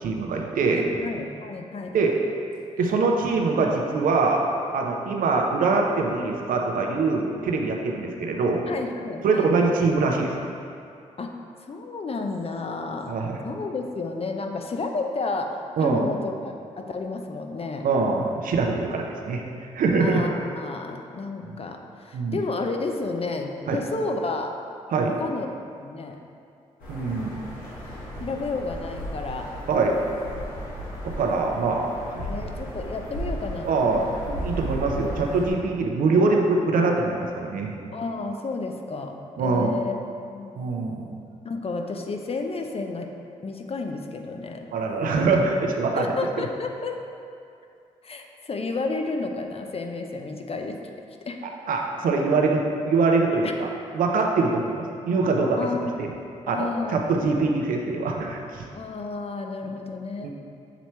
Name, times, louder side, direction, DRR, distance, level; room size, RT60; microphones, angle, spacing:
voice 1, 0.0-0.8 1.9-2.2 2.8-4.5 4.7-8.6 9.2-10.4 13.1-13.4 15.8-16.1 17.8-19.4 19.7-20.3 22.1-22.4 23.7-23.8 24.9-25.1 26.9-27.4 29.7-30.0 31.0-32.3 33.6-37.7 39.4-39.7 40.6-41.1 44.7-46.1 46.4-46.5 51.7-53.7 53.9-55.6 56.0-56.1 56.5-58.7 60.2-60.3, right 3 dB, 75° right, 1 dB, 0.7 m, -23 dB
voice 2, 0.7-2.0 8.7-9.8 11.2-11.3 11.7-13.1 13.4-17.9 20.0-24.5 25.2-25.5 25.8-26.2 28.2-29.5 32.2-34.1 37.9-40.5 41.4-43.1 43.4-44.7 46.0-47.0 48.0-50.9 51.2-51.4 53.4-53.5 55.6-56.0 56.5-57.4 58.7-60.3, left 3 dB, 45° left, 4 dB, 0.6 m, -31 dB
sound 1, 26.8-35.5, equal, 85° left, 1.2 m, -35 dB
7.0 x 3.0 x 4.4 m, 2.5 s
supercardioid pair, 45°, 14 cm